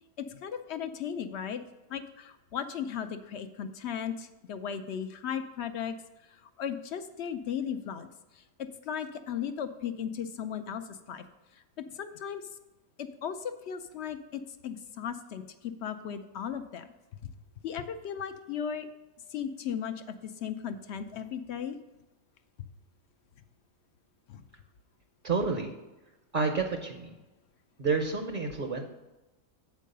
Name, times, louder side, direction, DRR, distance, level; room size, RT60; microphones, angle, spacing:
voice 1, 0.2-1.6 1.9-5.9 6.3-8.1 8.3-11.2 11.8-12.4 13.0-16.9 17.6-18.9 19.3-21.8 22.6-22.7 24.3-24.4, left 8 dB, 65° left, 9 dB, 0.7 m, -36 dB
voice 2, 25.2-25.7 26.3-27.1 27.8-28.8, right 4 dB, 45° right, 4 dB, 0.8 m, -29 dB
8.2 x 4.6 x 6.5 m, 1.1 s
omnidirectional pair, 1.5 m